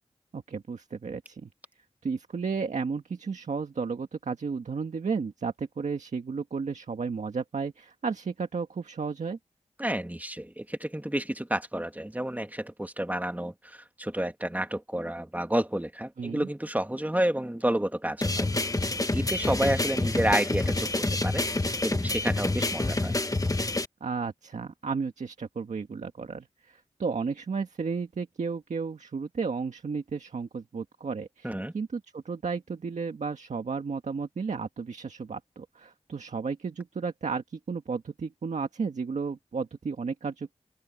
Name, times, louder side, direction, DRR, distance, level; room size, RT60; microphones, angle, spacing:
voice 1, 0.3-1.5 2.0-9.4 16.2-16.5 24.0-40.5, right 5 dB, 90° right, 1.7 m, -33 dB
voice 2, 9.8-18.5 19.1-21.4 21.8-23.2 31.4-31.7, right 1 dB, 15° right, 2.7 m, -30 dB
sound 1, 18.2-23.8, left 2 dB, 30° left, 1.5 m, -27 dB
open air
cardioid pair, 40°, 12 cm